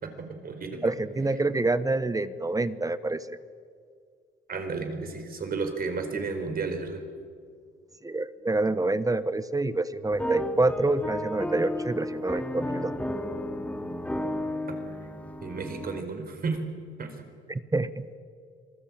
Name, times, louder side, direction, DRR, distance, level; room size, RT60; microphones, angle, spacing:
voice 1, 0.0-0.9 4.5-7.0 14.7-15.0 15.4-16.6 17.0-17.3, right 4 dB, 50° right, 6 dB, 4.7 m, -33 dB
voice 2, 0.8-3.4 8.0-13.1 17.5-18.2, right 2 dB, 15° right, 14 dB, 1.0 m, -27 dB
sound 1, 10.1-16.0, left 1 dB, 5° left, 3.1 m, -33 dB
26.5 x 20.0 x 8.7 m, 2.2 s
cardioid pair, 90°, 20 cm